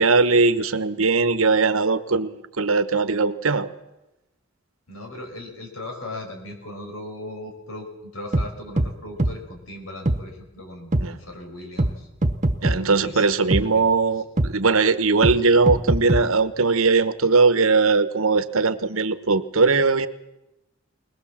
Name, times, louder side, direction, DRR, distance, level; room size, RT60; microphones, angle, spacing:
voice 1, 0.0-3.7 11.0-11.2 12.6-20.1, right 4 dB, 90° right, 12 dB, 1.2 m, -20 dB
voice 2, 4.9-12.1 12.8-13.9, left 1 dB, 80° left, 3 dB, 5.6 m, -38 dB
sound 1, 8.3-8.5 8.8-8.9 9.2-9.3 10.0-10.2 10.9-11.0 11.8-11.9 12.2-12.8 13.5-13.6 14.4-14.5 15.2-15.4 15.7-16.2, right 1 dB, 35° right, 1.1 m, -21 dB
21.5 x 20.0 x 7.4 m, 0.97 s
head